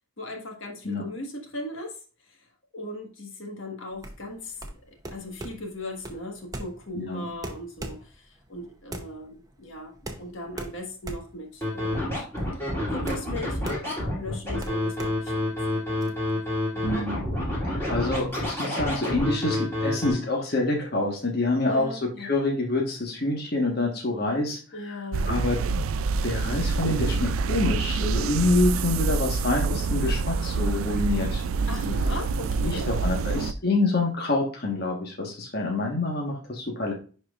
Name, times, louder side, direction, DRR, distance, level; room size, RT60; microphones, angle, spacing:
voice 1, 0.2-2.0 2.3-2.4 2.7-4.5 5.1-16.4 16.7-16.9 21.6-22.3 24.7-25.3 31.7-32.9, left 1 dB, 65° left, 2 dB, 1.5 m, -38 dB
sound 1, 3.9-16.1, right 1 dB, 15° right, 0.7 m, -40 dB
Scratching (performance technique), 11.6-20.1, left 1 dB, 10° left, 2.9 m, -28 dB
voice 2, 16.8-17.2 17.7-24.9 25.3-25.6 26.2-31.4 32.6-36.9, left 2 dB, 45° left, -1 dB, 1.3 m, -27 dB
sound 2, 25.1-33.5, right 4 dB, 75° right, 0.4 m, -26 dB
10.5 x 4.4 x 2.4 m, 0.38 s
head